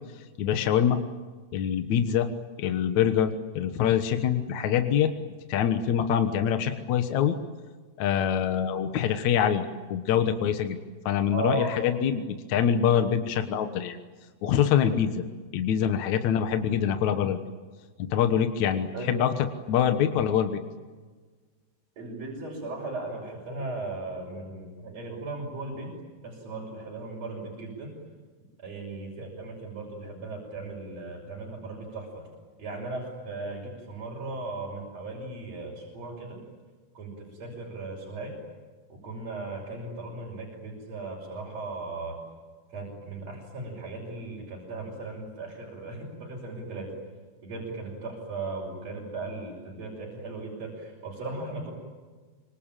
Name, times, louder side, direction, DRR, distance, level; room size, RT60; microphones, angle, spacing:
voice 1, 0.4-1.0 1.5-2.3 2.6-5.1 5.5-7.4 8.0-10.8 11.1-14.0 14.4-15.2 15.5-17.4 18.0-19.3 19.7-20.6, left 9 dB, 70° left, 8 dB, 2.6 m, -25 dB
voice 2, 11.3-11.7 18.9-19.2 22.0-25.9 26.2-27.9 28.6-32.3 32.6-36.4 37.0-38.3 39.0-42.2 42.7-46.9 47.4-51.7, right 2 dB, 55° right, -3 dB, 6.9 m, -37 dB
26.5 x 25.0 x 9.0 m, 1.4 s
omnidirectional pair, 3.5 m